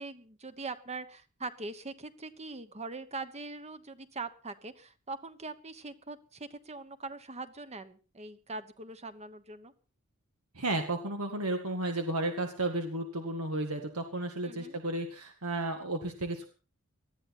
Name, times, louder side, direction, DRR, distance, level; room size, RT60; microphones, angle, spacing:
voice 1, 0.0-9.7 14.4-14.8, right 3 dB, 30° right, 12 dB, 1.2 m, -42 dB
voice 2, 10.5-16.5, right 2 dB, 75° right, 5 dB, 2.0 m, -33 dB
19.5 x 13.0 x 4.4 m, 0.36 s
head